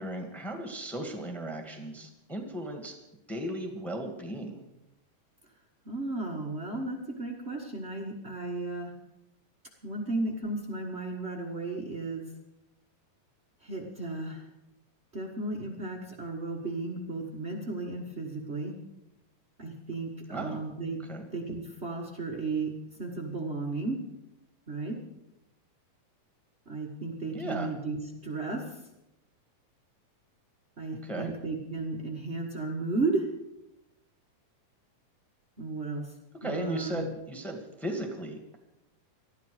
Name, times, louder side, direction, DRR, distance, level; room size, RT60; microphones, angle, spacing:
voice 1, 0.0-3.0 3.3-4.6 20.3-20.6 21.0-21.3 27.3-27.7 31.0-31.3 36.4-38.6, right 1 dB, ahead, 4 dB, 1.2 m, -36 dB
voice 2, 5.8-8.9 9.8-12.2 13.6-14.4 15.1-18.7 19.6-21.0 21.3-22.7 23.0-24.0 24.7-25.0 26.7-28.6 30.8-33.3 35.6-36.1 36.4-37.0, right 3 dB, 85° right, -1 dB, 0.5 m, -34 dB
19.5 x 13.5 x 5.1 m, 0.87 s
omnidirectional pair, 4.0 m